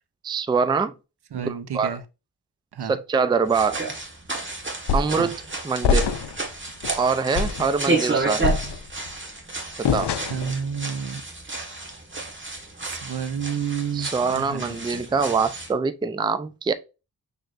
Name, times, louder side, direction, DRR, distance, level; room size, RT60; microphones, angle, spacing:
voice 1, 0.2-0.9 1.4-2.0 2.8-3.8 4.9-5.4 5.6-6.1 6.9-8.5 9.8-10.1 13.9-16.7, right 5 dB, 10° right, 0.3 m, -24 dB
voice 2, 1.3-2.0 2.7-2.9 5.2-5.3 10.3-11.2 12.8-15.0, right 7 dB, 75° right, 0.6 m, -30 dB
sound 1, 3.5-15.7, right 3 dB, 30° right, 1.3 m, -31 dB
sound 2, 4.9-5.3 5.8-6.4 6.8-7.0 7.3-7.7 8.4-9.1 9.8-10.6, left 5 dB, 80° left, 0.5 m, -24 dB
6.2 x 3.3 x 2.4 m
wide cardioid pair, 70°, 40 cm